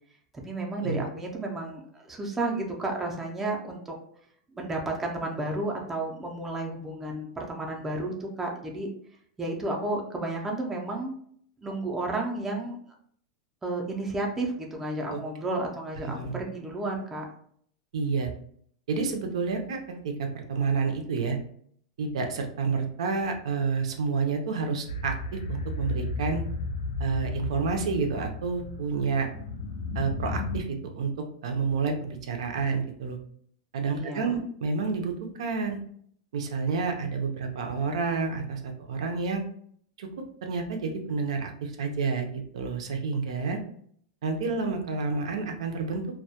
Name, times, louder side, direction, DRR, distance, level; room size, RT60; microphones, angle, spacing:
voice 1, 0.4-4.0 4.5-8.9 9.4-11.1 11.6-12.8 13.6-17.2 33.9-34.4, right 2 dB, 10° right, 0 dB, 0.4 m, -32 dB
voice 2, 16.1-16.4 17.9-18.3 18.9-21.4 22.0-26.4 27.0-29.3 29.9-33.2 33.7-35.8 36.3-39.4 40.0-40.1 40.4-43.6 44.2-46.1, right 4 dB, 85° right, 4 dB, 0.5 m, -29 dB
sound 1, 24.9-30.6, left 3 dB, 90° left, 0.4 m, -34 dB
2.2 x 2.1 x 2.7 m, 0.63 s
supercardioid pair, 155°, 3 cm